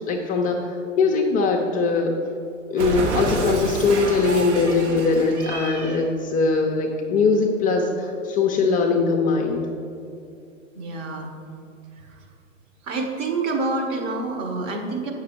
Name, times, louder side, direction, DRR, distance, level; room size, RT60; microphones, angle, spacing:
voice 1, 0.1-2.1 2.7-9.6, left 4 dB, 20° left, 1 dB, 0.5 m, -21 dB
Cat, 2.8-6.1, right 2 dB, 60° right, 1.4 m, -29 dB
voice 2, 10.7-11.3 11.9-12.2 12.8-15.1, right 3 dB, 35° right, 2 dB, 1.4 m, -27 dB
8.5 x 6.0 x 4.6 m, 2.5 s
figure-of-eight pair, 95°, 38 cm